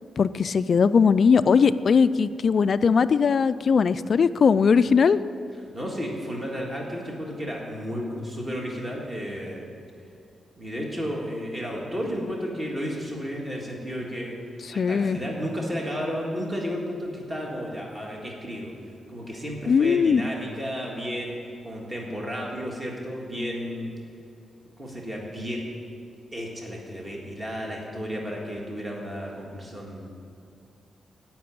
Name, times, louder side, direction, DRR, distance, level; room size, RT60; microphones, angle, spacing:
voice 1, 0.2-5.2 14.8-15.2 19.7-20.2, left 6 dB, 40° left, 14 dB, 0.3 m, -20 dB
voice 2, 5.7-9.7 10.6-18.7 19.1-23.9 24.8-25.6 26.3-30.1, equal, 15° right, -2 dB, 1.8 m, -33 dB
16.0 x 6.0 x 8.8 m, 2.4 s
wide cardioid pair, 175°, 0 cm